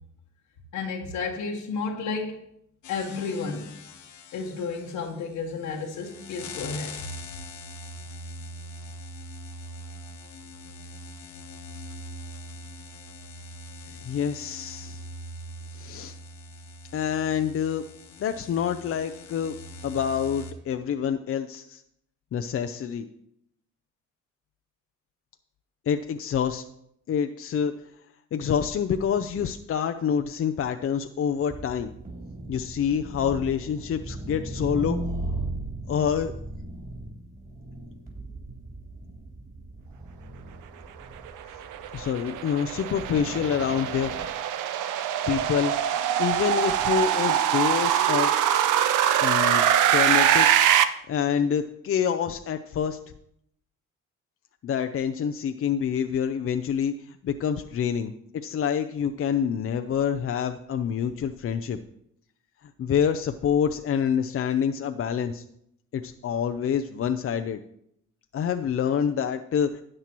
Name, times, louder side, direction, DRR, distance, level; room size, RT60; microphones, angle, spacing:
voice 1, 0.7-2.4 2.9-3.8 4.3-7.1, left 4 dB, 85° left, -1 dB, 1.4 m, -32 dB
sound 1, 2.8-20.5, left 1 dB, 70° left, 1.2 m, -42 dB
voice 2, 13.9-15.0 15.7-16.2 16.9-17.8 18.2-19.6 19.8-21.8 22.3-23.1 25.9-26.6 27.1-27.7 28.3-31.9 32.5-35.0 35.9-36.3 41.9-44.1 45.3-45.7 46.2-48.3 49.2-49.6 49.9-50.5 51.1-53.0 54.6-56.9 57.2-61.8 62.8-65.4 65.9-67.6 68.3-69.7, left 8 dB, 50° left, 7 dB, 0.5 m, -27 dB
sound 2, 31.5-44.3, right 2 dB, 30° right, 3.5 m, -37 dB
sound 3, 41.3-50.8, right 10 dB, 90° right, 0.7 m, -23 dB
12.5 x 8.8 x 3.0 m, 0.74 s
cardioid pair, 90°, 30 cm